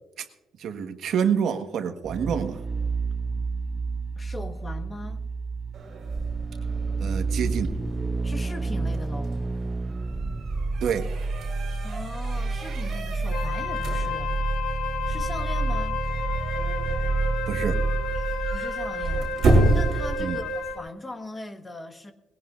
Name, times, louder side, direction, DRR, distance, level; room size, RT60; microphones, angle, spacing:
voice 1, 0.6-2.6 7.0-7.7 10.8-11.1 17.5-17.8 20.2-20.4, right 7 dB, 65° right, 6 dB, 1.5 m, -27 dB
sound 1, 2.0-19.6 19.8-19.9, right 3 dB, 25° right, 0.4 m, -29 dB
voice 2, 4.2-5.2 8.2-9.4 11.8-14.3 15.1-16.0 18.5-19.3 19.7-22.1, left 2 dB, 20° left, 6 dB, 1.4 m, -39 dB
sound 2, 5.7-20.8, right 2 dB, 45° right, 7.0 m, -31 dB
Wind instrument woodwind instrument, 13.3-20.9, left 4 dB, 80° left, 1.2 m, -32 dB
21.0 x 17.0 x 2.6 m, 0.94 s
cardioid pair, 145°, 0 cm